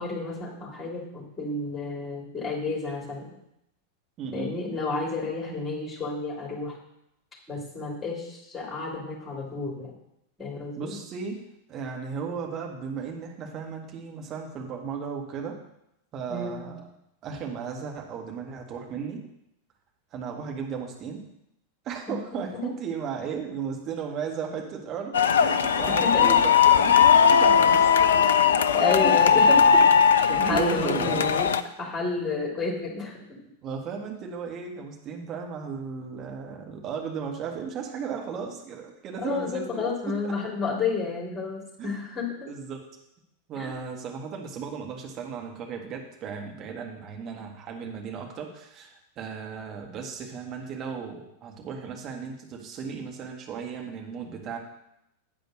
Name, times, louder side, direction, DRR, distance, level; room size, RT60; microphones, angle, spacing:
voice 1, 0.0-3.3 4.3-6.8 7.5-9.9 10.4-10.9 16.3-16.6 22.1-22.2 22.6-22.7 26.0-26.4 28.7-29.8 30.1-31.5 31.8-33.4 39.2-42.5 43.5-43.7, left 4 dB, 15° left, -2 dB, 3.1 m, -31 dB
voice 2, 4.2-4.5 10.8-11.4 11.7-15.6 16.1-16.9 17.2-19.2 20.1-21.2 21.8-28.3 28.6-28.7 29.0-29.2 29.6-29.7 30.3-31.3 33.6-40.3 41.8-41.9 42.5-42.9 43.5-54.6, right 6 dB, 30° right, 1 dB, 1.8 m, -35 dB
sound 1, 25.1-31.6, left 7 dB, 65° left, 0.4 m, -19 dB
8.7 x 5.1 x 6.4 m, 0.81 s
figure-of-eight pair, 90°, 0 cm